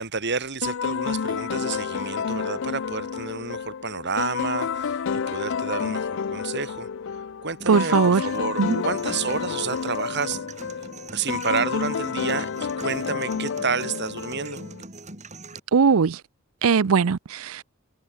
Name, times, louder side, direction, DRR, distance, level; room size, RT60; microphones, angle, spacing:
voice 1, 0.0-10.4 11.1-14.6, right 5 dB, 55° right, 4.2 m, -30 dB
sound 1, 0.6-14.8, left 6 dB, 60° left, 0.5 m, -29 dB
sound 2, 7.6-15.6, right 2 dB, 35° right, 5.8 m, -43 dB
voice 2, 7.7-8.2 8.6-8.8 15.7-16.2 16.6-17.6, right 5 dB, 80° right, 0.5 m, -19 dB
head